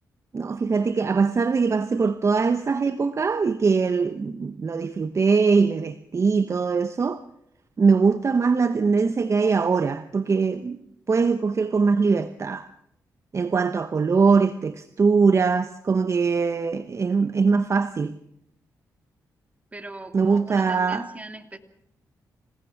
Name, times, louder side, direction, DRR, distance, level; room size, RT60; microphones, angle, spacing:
voice 1, 0.3-7.2 7.8-10.8 11.1-12.7 13.3-18.1 20.1-21.0, right 5 dB, 40° right, 0.9 m, -22 dB
voice 2, 19.7-21.6, right 2 dB, 20° right, 2.6 m, -39 dB
26.5 x 18.0 x 5.9 m
cardioid pair, 65°, 7 cm